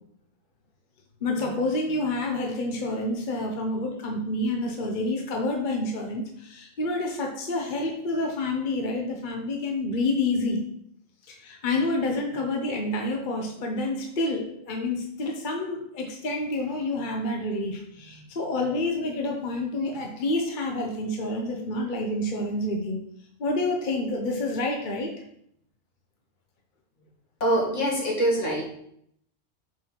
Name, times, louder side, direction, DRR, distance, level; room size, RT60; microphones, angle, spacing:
voice 1, 1.2-10.6 11.3-23.0 23.4-25.2, left 2 dB, 40° left, 1 dB, 0.9 m, -28 dB
voice 2, 27.4-28.6, right 1 dB, 55° left, -3 dB, 2.4 m, -24 dB
5.7 x 5.0 x 5.8 m, 0.71 s
omnidirectional pair, 1.5 m